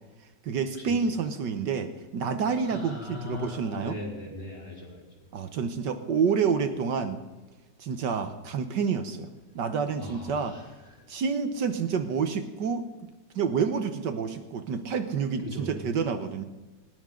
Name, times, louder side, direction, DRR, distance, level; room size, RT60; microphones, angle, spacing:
voice 1, 0.4-4.0 5.3-7.2 7.8-9.3 9.5-10.5 11.1-12.8 13.3-16.4, right 6 dB, 70° right, 9 dB, 1.7 m, -28 dB
voice 2, 2.6-5.1 10.0-11.2 15.4-15.8, left 2 dB, 30° left, -2 dB, 4.3 m, -39 dB
19.5 x 19.0 x 3.8 m, 1.2 s
omnidirectional pair, 2.0 m